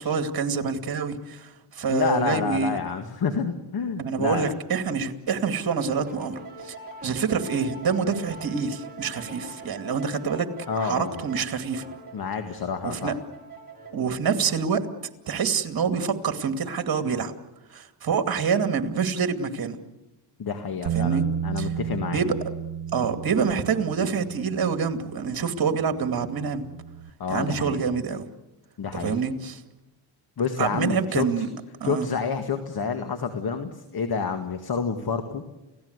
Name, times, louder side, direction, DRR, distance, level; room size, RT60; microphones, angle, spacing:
voice 1, 0.0-2.8 4.0-6.7 7.0-10.5 10.8-11.9 12.8-13.1 13.9-14.8 15.3-17.3 17.7-19.8 20.9-21.3 21.6-21.7 22.1-22.4 22.9-26.7 27.3-28.2 28.9-29.6 30.6-31.5 31.8-32.1, right 6 dB, 50° right, 2.5 m, -26 dB
voice 2, 1.9-4.5 10.7-11.2 12.1-13.1 20.4-22.2 27.2-27.9 28.8-29.2 30.4-31.5 31.8-35.4, left 6 dB, 50° left, 2.0 m, -28 dB
sound 1, 5.8-15.2, right 3 dB, 20° right, 4.9 m, -43 dB
Bass guitar, 20.9-27.1, right 9 dB, 70° right, 1.5 m, -33 dB
29.5 x 17.0 x 8.2 m
cardioid pair, 95°, 47 cm